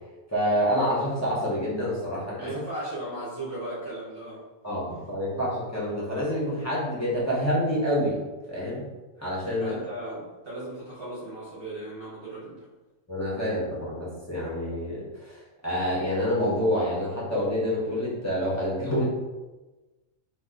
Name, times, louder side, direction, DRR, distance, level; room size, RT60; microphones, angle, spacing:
voice 1, 0.3-2.5 4.6-8.2 8.5-8.8 9.2-9.7 13.1-15.0 15.6-19.0, equal, 15° left, -8 dB, 0.9 m, -27 dB
voice 2, 2.4-4.4 9.6-12.7, right 1 dB, 45° right, -9 dB, 1.2 m, -36 dB
3.0 x 2.4 x 3.7 m, 1.2 s
omnidirectional pair, 1.4 m